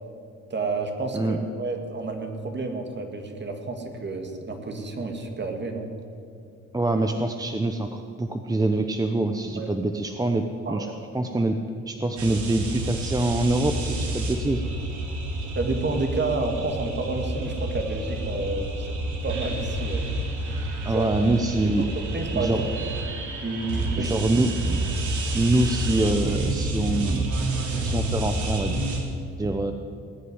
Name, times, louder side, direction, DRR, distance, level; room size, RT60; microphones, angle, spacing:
voice 1, 0.5-5.9 9.6-9.7 10.7-10.9 15.5-18.9 19.2-20.1 20.8-21.1 22.0-22.7 23.4-24.1, right 3 dB, 35° right, 4 dB, 2.3 m, -30 dB
voice 2, 6.7-10.9 11.1-11.6 11.9-14.6 20.8-21.9 22.3-22.6 24.0-24.8 25.3-27.3 27.8-28.8 29.4-29.7, right 2 dB, 10° right, 5 dB, 0.8 m, -25 dB
sound 1, 12.2-29.0, right 1 dB, 75° right, 3.0 m, -29 dB
19.5 x 6.8 x 9.8 m, 2.4 s
cardioid pair, 90°, 30 cm